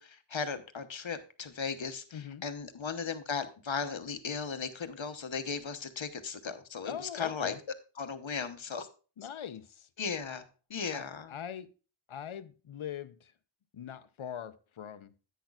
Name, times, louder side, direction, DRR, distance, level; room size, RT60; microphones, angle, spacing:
voice 1, 0.0-7.5 8.0-8.9 9.2-9.3 10.0-11.3, left 5 dB, 70° left, 10 dB, 1.0 m, -37 dB
voice 2, 2.1-2.4 6.9-7.6 9.2-9.9 10.9-11.7 12.1-13.3 13.7-15.1, left 9 dB, 90° left, 14 dB, 0.7 m, -42 dB
10.0 x 9.2 x 2.3 m, 0.35 s
wide cardioid pair, 55°, 47 cm